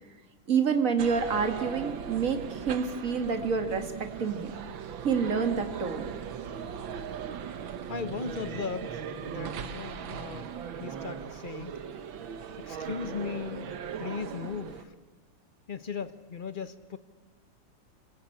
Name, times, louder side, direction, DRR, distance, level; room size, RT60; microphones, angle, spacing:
voice 1, 0.5-4.5 5.0-6.0, right 6 dB, 45° right, 6 dB, 2.3 m, -28 dB
sound 1, 1.0-14.8, right 7 dB, 80° right, 1.9 m, -39 dB
voice 2, 7.9-11.7 12.6-13.7 14.0-14.9 15.7-17.0, left 6 dB, 40° left, 11 dB, 0.8 m, -38 dB
26.5 x 21.5 x 8.7 m, 1.4 s
omnidirectional pair, 2.1 m